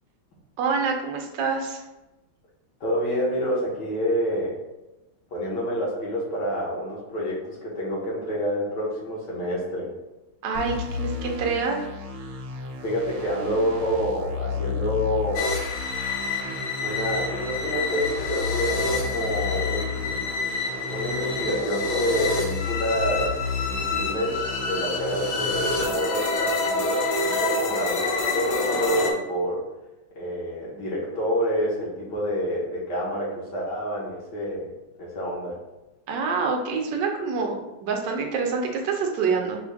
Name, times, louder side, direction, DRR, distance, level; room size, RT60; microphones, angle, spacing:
voice 1, 0.6-1.8 10.4-11.8 36.1-39.6, right 5 dB, 70° right, 1 dB, 1.3 m, -26 dB
voice 2, 2.8-4.5 5.3-9.9 12.8-15.5 16.8-20.3 20.9-23.3 23.6-29.6 30.1-34.7 35.0-35.6, equal, 60° left, -5 dB, 1.7 m, -28 dB
sound 1, 10.5-25.9, left 5 dB, 85° right, 1.4 m, -33 dB
sound 2, 15.4-29.1, left 3 dB, 90° left, 1.5 m, -28 dB
5.2 x 2.4 x 3.4 m, 0.99 s
omnidirectional pair, 2.2 m